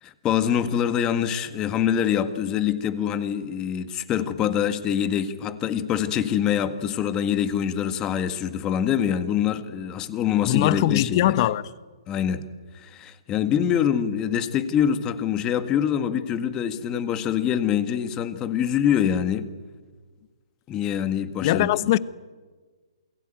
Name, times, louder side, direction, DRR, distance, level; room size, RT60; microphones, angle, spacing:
voice 1, 0.0-11.3 12.1-12.4 12.7-19.5 20.7-21.7, left 9 dB, 20° left, 1.8 m, -25 dB
voice 2, 10.4-11.6 21.4-22.0, left 14 dB, 35° left, 1.0 m, -21 dB
28.5 x 22.0 x 9.2 m
hypercardioid pair, 145°, 3 cm